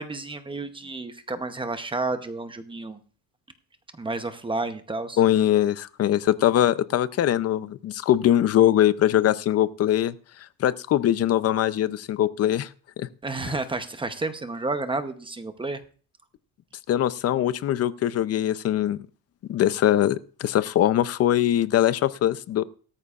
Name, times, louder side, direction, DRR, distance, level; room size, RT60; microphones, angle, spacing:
voice 1, 0.0-3.0 4.0-5.2 13.2-15.8, right 3 dB, 15° right, 9 dB, 0.8 m, -31 dB
voice 2, 5.2-10.1 10.6-12.7 13.0-13.1 13.5-13.6 16.9-19.0 19.5-22.6, left 11 dB, 40° left, 15 dB, 0.6 m, -22 dB
17.0 x 13.5 x 2.4 m, 0.40 s
cardioid pair, 155°, 40 cm